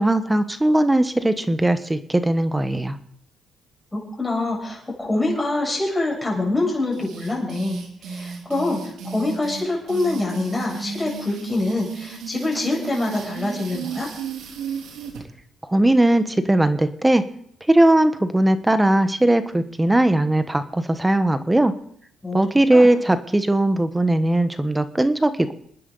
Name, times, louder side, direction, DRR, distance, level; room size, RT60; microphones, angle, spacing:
voice 1, 0.0-3.0 15.7-17.2 17.7-21.7 22.3-25.5, right 1 dB, 10° right, 11 dB, 1.1 m, -19 dB
voice 2, 3.9-14.1 22.2-22.4 22.7-22.9, left 2 dB, 15° left, -3 dB, 7.5 m, -25 dB
sound 1, 6.9-15.2, right 5 dB, 85° right, 3.0 m, -34 dB
29.0 x 10.0 x 4.0 m, 0.64 s
cardioid pair, 90°, 0 cm